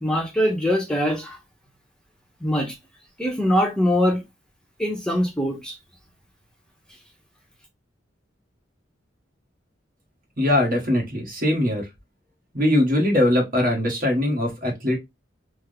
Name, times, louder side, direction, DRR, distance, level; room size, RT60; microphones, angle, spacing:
voice 1, 0.0-1.4 2.4-2.7 3.2-4.2 4.8-5.7, equal, 5° left, 0.7 m, -22 dB
voice 2, 10.4-11.8 12.5-15.0, left 1 dB, 50° right, 1.3 m, -21 dB
3.4 x 2.0 x 3.4 m
head